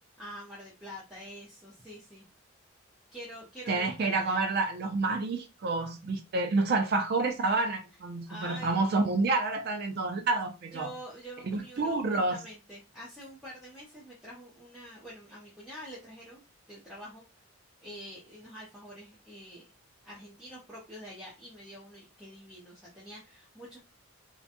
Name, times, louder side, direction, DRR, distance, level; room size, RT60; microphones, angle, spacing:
voice 1, 0.2-2.2 3.1-4.4 8.3-9.1 10.7-16.4 16.7-17.2 17.8-19.6 20.0-23.8, equal, 5° right, 0.6 m, -46 dB
voice 2, 3.7-10.9 11.5-12.4, right 3 dB, 50° right, 0.3 m, -29 dB
2.7 x 2.2 x 2.5 m
head